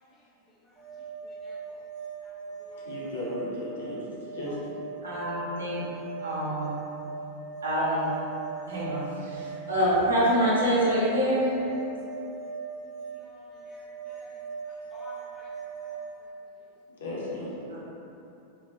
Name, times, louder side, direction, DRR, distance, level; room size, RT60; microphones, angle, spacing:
sound 1, 0.8-16.1, right 6 dB, 25° right, 0.7 m, -40 dB
voice 1, 1.2-1.8 2.2-2.3 2.6-2.8 4.5-4.6 5.0-5.1 5.7-6.0 13.2-14.3 14.9-15.5 15.8-16.0, left 2 dB, 20° left, -6 dB, 0.3 m, -52 dB
voice 2, 2.8-4.8 17.0-17.5, left 1 dB, 65° left, -6 dB, 0.6 m, -35 dB
voice 3, 5.0-5.9 6.2-6.8 7.6-8.1 8.7-11.6 17.7-17.8, equal, 70° right, -7 dB, 0.6 m, -26 dB
2.4 x 2.2 x 2.4 m, 2.8 s
figure-of-eight pair, 90°, 0 cm